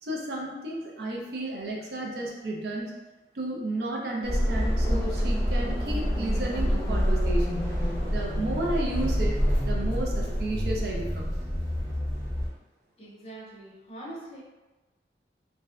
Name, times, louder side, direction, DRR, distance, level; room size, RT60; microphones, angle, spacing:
voice 1, 0.0-2.9 3.3-7.7 8.1-9.4 9.6-11.4, right 1 dB, 65° right, -2 dB, 0.4 m, -33 dB
sound 1, 4.2-12.5, equal, 20° right, 0.9 m, -27 dB
voice 2, 13.0-14.4, right 1 dB, 35° left, -6 dB, 0.6 m, -43 dB
2.5 x 2.0 x 2.4 m, 1.1 s
head